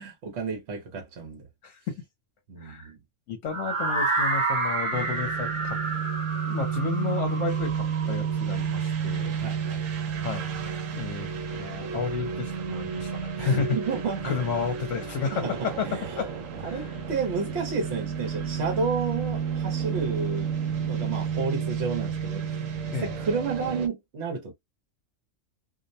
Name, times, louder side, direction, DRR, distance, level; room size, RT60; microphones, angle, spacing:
voice 1, 0.0-1.4 2.5-3.0 9.3-9.8 13.4-14.3 15.3-15.6 15.8-16.0 16.6-20.6 20.8-22.5 23.0-24.5, right 4 dB, 60° right, 1.0 m, -31 dB
voice 2, 1.6-2.0 2.6-2.9 3.3-5.8 6.5-9.3 10.2-10.5 10.8-11.3 11.6-13.8 14.2-16.3 16.6-17.0 22.9-23.2, left 6 dB, 75° left, 1.0 m, -32 dB
sound 1, 3.5-9.4, right 3 dB, 30° right, 0.7 m, -30 dB
sound 2, 4.9-23.9, right 7 dB, 80° right, 1.0 m, -31 dB
2.5 x 2.1 x 2.6 m
omnidirectional pair, 1.4 m